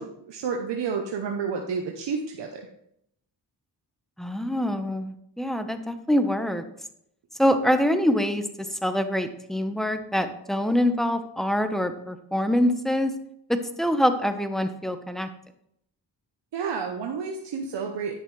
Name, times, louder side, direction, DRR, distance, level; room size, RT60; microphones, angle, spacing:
voice 1, 0.0-2.7 16.5-18.2, right 5 dB, 75° right, 2 dB, 1.0 m, -30 dB
voice 2, 4.2-6.6 7.4-13.2 13.5-15.3, equal, ahead, 8 dB, 1.0 m, -25 dB
10.5 x 6.6 x 3.3 m, 0.73 s
cardioid pair, 50°, 43 cm